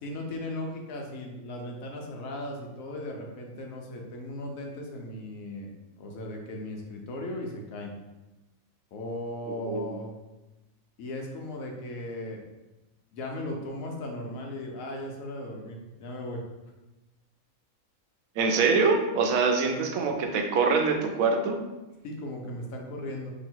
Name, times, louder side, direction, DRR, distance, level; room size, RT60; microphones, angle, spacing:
voice 1, 0.0-7.9 8.9-10.1 11.0-12.4 13.1-16.4 19.6-19.8 22.0-23.3, left 1 dB, 85° left, 1 dB, 1.1 m, -37 dB
voice 2, 9.5-9.9 18.4-21.6, right 4 dB, 85° right, 4 dB, 1.0 m, -24 dB
3.0 x 2.7 x 4.4 m, 1.1 s
omnidirectional pair, 1.4 m